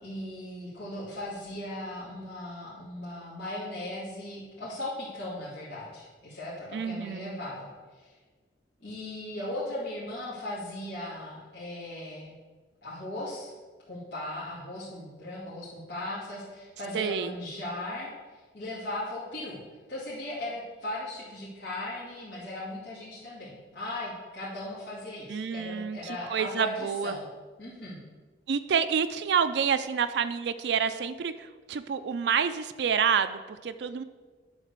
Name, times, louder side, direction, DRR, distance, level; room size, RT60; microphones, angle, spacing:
voice 1, 0.0-7.7 8.0-8.1 8.8-12.3 12.8-13.5 13.9-19.6 19.9-27.3 27.6-28.0, left 1 dB, 90° left, -10 dB, 2.4 m, -38 dB
voice 2, 6.7-7.4 16.9-17.3 25.3-27.1 28.5-34.0, right 7 dB, 70° right, 10 dB, 0.4 m, -28 dB
10.5 x 3.9 x 6.6 m, 1.4 s
head